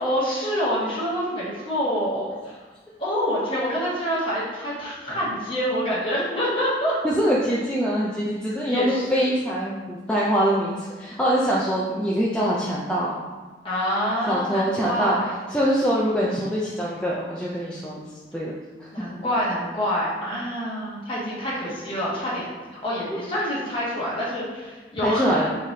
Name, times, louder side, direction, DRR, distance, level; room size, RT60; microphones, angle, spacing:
voice 1, 0.0-2.6 3.0-7.0 8.7-9.3 13.6-15.3 18.9-25.4, equal, 30° left, -7 dB, 1.3 m, -26 dB
voice 2, 7.0-13.1 14.3-15.2 15.5-18.0 18.3-18.5 18.8-18.9 25.0-25.5, equal, 5° left, -6 dB, 0.4 m, -23 dB
5.6 x 3.2 x 2.7 m, 1.3 s
head